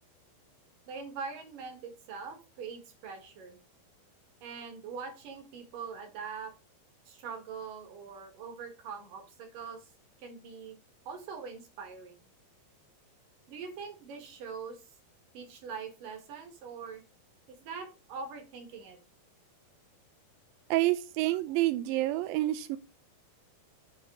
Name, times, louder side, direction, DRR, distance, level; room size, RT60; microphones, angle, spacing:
voice 1, 0.9-3.6 4.4-6.5 7.1-9.8 10.2-10.8 11.1-12.1 13.5-14.8 15.3-17.0 17.6-19.0, right 5 dB, 60° right, 3.2 m, -42 dB
voice 2, 20.7-22.8, right 16 dB, 85° right, 2.1 m, -28 dB
7.4 x 3.9 x 5.6 m
omnidirectional pair, 4.5 m